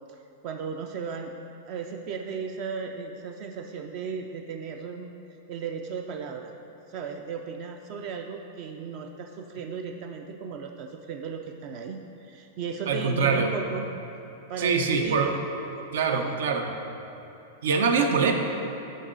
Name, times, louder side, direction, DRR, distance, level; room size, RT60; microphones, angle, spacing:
voice 1, 0.4-1.3 1.7-5.1 5.5-6.5 6.9-13.9 14.4-15.4 15.8-16.4, right 6 dB, 35° right, 4 dB, 0.4 m, -36 dB
voice 2, 12.9-13.5 14.6-15.3 15.9-16.7 17.6-18.3, right 5 dB, 80° right, 4 dB, 0.8 m, -24 dB
10.0 x 5.5 x 3.9 m, 2.9 s
supercardioid pair, 175°, 0 cm